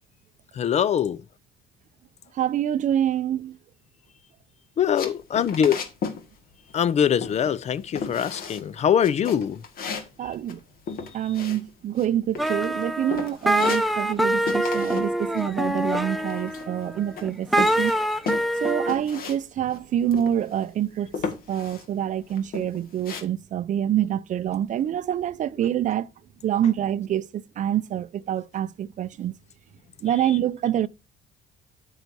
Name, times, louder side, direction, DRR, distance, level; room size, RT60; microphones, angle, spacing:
voice 1, 0.5-1.2 4.8-5.8 6.7-9.6, left 8 dB, 40° left, 0.5 m, -23 dB
voice 2, 2.3-3.6 10.2-10.6 11.1-18.0 18.6-21.1 21.5-26.1 26.4-29.3 30.0-30.9, right 10 dB, 50° right, 0.5 m, -26 dB
sound 1, 4.9-6.2 6.5-6.9 7.2-7.7 8.0-8.7 9.0-12.1 12.3-12.8 13.1-14.2 14.5-15.1 15.4-16.8 17.2-19.4 19.7-19.8 20.1-20.7 21.1-21.9 22.3-23.2, left 5 dB, 60° left, 1.7 m, -34 dB
sound 2, 12.4-19.0, right 1 dB, ahead, 0.6 m, -25 dB
8.9 x 8.1 x 2.7 m
cardioid pair, 110°, 17 cm